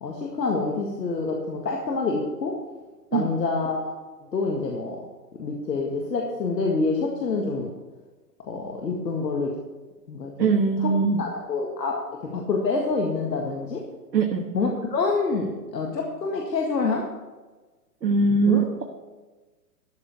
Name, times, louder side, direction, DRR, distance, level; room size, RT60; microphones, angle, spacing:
voice 1, 0.0-2.6 3.1-3.9 4.3-5.0 5.4-7.7 8.4-9.5 10.1-10.5 10.8-10.9 11.2-13.8 14.5-17.0 18.5-18.6, left 3 dB, 85° left, 0 dB, 2.0 m, -27 dB
voice 2, 10.4-11.3 14.1-14.5 18.0-18.8, right 4 dB, 85° right, 3 dB, 1.5 m, -21 dB
13.0 x 7.1 x 6.9 m, 1.2 s
hypercardioid pair, 120°, 49 cm